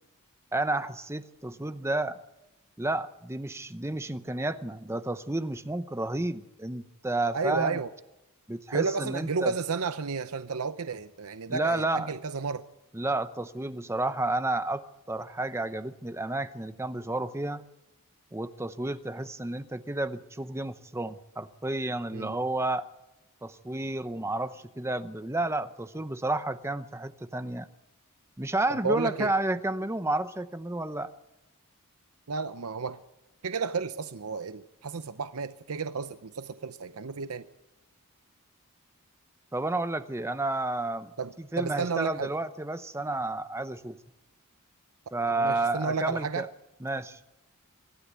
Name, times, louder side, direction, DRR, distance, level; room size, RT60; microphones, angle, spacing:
voice 1, 0.5-2.2 2.8-7.8 8.5-9.5 11.5-12.1 12.9-17.6 18.3-22.9 23.4-27.7 28.4-31.1 39.5-41.1 41.4-44.0 45.1-46.5 46.8-47.2, right 2 dB, 10° right, 0.7 m, -31 dB
voice 2, 7.3-7.9 8.7-12.7 22.1-22.4 28.7-29.3 32.3-33.0 33.4-37.5 41.2-42.3 45.3-46.5, right 5 dB, 80° right, 0.7 m, -32 dB
24.5 x 13.0 x 8.1 m
head